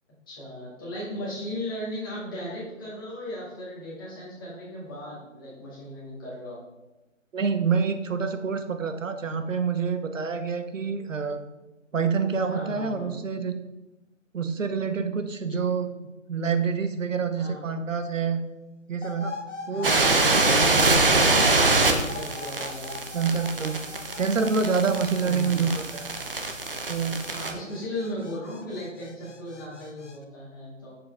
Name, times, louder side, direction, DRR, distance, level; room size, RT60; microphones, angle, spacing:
voice 1, 0.3-6.6 12.5-13.1 17.3-17.6 19.7-22.9 25.2-25.6 27.3-30.9, left 1 dB, 15° left, -8 dB, 1.9 m, -36 dB
voice 2, 7.3-11.4 11.9-13.6 14.3-15.9 16.3-18.4 18.9-19.3 19.7-20.6 23.1-23.8 24.2-26.1 26.9-27.2, right 5 dB, 70° right, 9 dB, 0.9 m, -27 dB
sound 1, 19.0-30.2, left 3 dB, 65° left, 0.9 m, -41 dB
sound 2, 19.8-27.5, right 3 dB, 45° right, 0.8 m, -24 dB
7.4 x 6.9 x 3.4 m, 1.1 s
hypercardioid pair, 175°, 39 cm